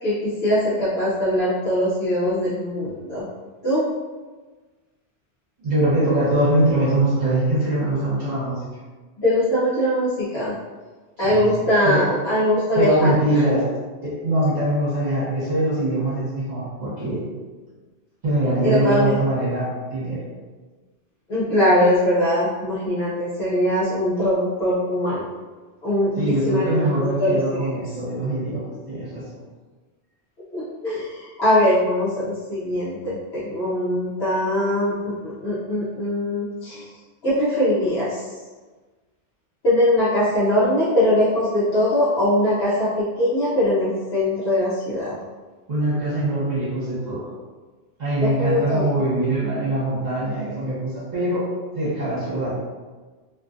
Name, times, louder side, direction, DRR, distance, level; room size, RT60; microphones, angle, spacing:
voice 1, 0.0-3.2 3.6-3.8 9.2-10.5 11.2-13.1 18.6-19.2 21.3-25.3 25.8-27.7 30.5-36.8 37.2-38.3 39.6-45.2 48.2-48.9, left 1 dB, 70° left, -11 dB, 1.0 m, -21 dB
voice 2, 5.6-8.6 11.2-12.0 12.7-13.6 14.0-17.2 18.2-20.2 26.2-29.2 45.7-47.3 48.0-51.5 51.7-52.6, right 1 dB, 40° right, -10 dB, 1.1 m, -23 dB
2.5 x 2.4 x 2.5 m, 1.3 s
omnidirectional pair, 1.1 m